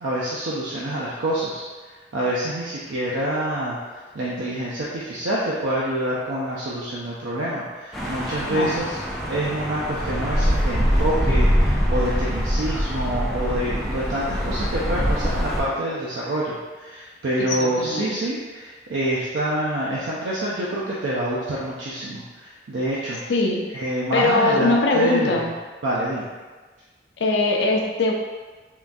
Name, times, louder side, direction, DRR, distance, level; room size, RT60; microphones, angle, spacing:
voice 1, 0.0-1.6 2.1-3.8 4.1-9.0 9.3-23.2 23.7-25.4 25.8-26.3, right 1 dB, 90° right, -6 dB, 0.5 m, -27 dB
sound 1, 7.9-15.6, equal, ahead, 0.3 m, -23 dB
voice 2, 8.5-8.8 17.4-18.2 23.3-23.7 24.1-25.5 27.2-28.1, left 2 dB, 75° left, 1 dB, 0.4 m, -21 dB
3.6 x 2.3 x 2.6 m, 1.3 s
head